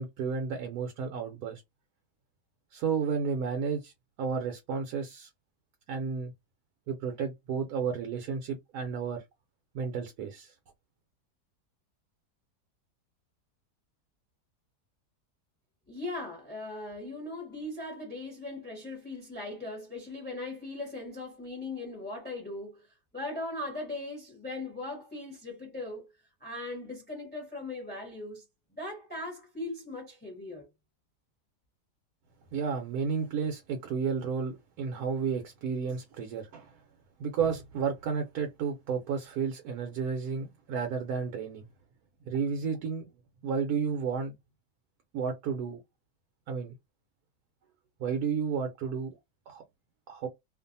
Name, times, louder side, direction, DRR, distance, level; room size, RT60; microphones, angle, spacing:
voice 1, 0.0-1.6 2.7-3.9 4.2-5.3 5.9-6.3 6.9-9.2 9.7-10.6 32.5-36.8 37.2-41.7 42.2-43.1 43.4-44.3 45.1-45.8 46.5-46.7 48.0-49.2 49.5-49.6 50.1-50.3, right 6 dB, 70° right, 1.0 m, -32 dB
voice 2, 15.9-26.1 26.4-28.4 28.8-30.7, left 2 dB, 10° left, 0.8 m, -39 dB
2.6 x 2.4 x 2.6 m
omnidirectional pair, 1.7 m